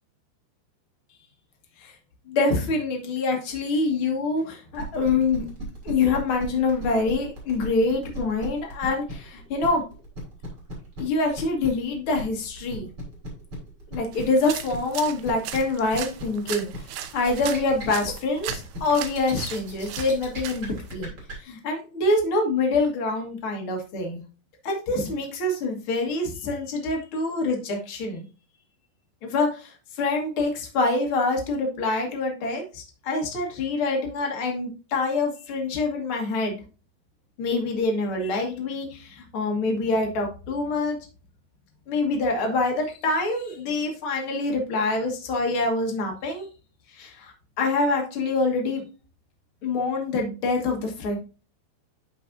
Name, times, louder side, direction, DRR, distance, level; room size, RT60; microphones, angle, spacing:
voice 1, 2.3-5.5 5.8-9.8 11.0-12.9 13.9-16.7 17.0-21.1 21.4-24.2 24.6-28.2 29.2-36.6 37.4-41.0 41.9-46.5 46.9-48.8 49.6-51.2, left 3 dB, 65° left, 2 dB, 1.3 m, -25 dB
sound 1, 4.7-21.3, equal, 30° right, 3.8 m, -37 dB
sound 2, 14.1-20.9, right 11 dB, 80° right, 2.6 m, -38 dB
11.5 x 4.7 x 2.6 m, 0.34 s
omnidirectional pair, 5.0 m